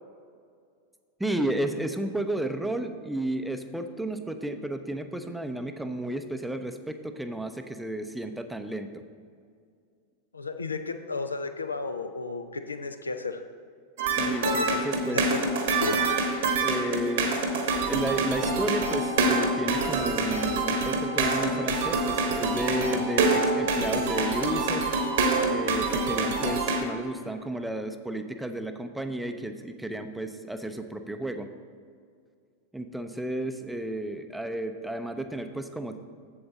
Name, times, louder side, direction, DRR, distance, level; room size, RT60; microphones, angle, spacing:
voice 1, 1.2-9.0 14.2-15.2 16.6-17.4 17.7-24.9 25.5-31.5 32.7-36.0, right 1 dB, 5° right, 8 dB, 0.6 m, -32 dB
voice 2, 10.3-13.4 14.2-14.8 15.1-16.0, left 4 dB, 80° left, 8 dB, 0.5 m, -33 dB
sound 1, 14.0-26.8, right 3 dB, 55° right, 1.1 m, -26 dB
7.7 x 7.7 x 4.1 m, 2.2 s
figure-of-eight pair, 90°, 0 cm